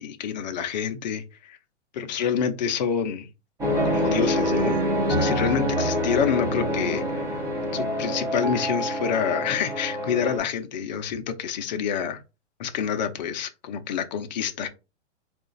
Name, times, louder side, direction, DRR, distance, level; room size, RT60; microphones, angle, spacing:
voice 1, 0.0-1.6 1.9-3.3 3.8-4.8 5.1-7.3 7.7-12.2 12.6-14.7, left 7 dB, 40° left, 0.6 m, -27 dB
sound 1, 3.6-10.4, equal, 10° right, 0.7 m, -26 dB
3.9 x 2.4 x 3.8 m
hypercardioid pair, 155°, 35 cm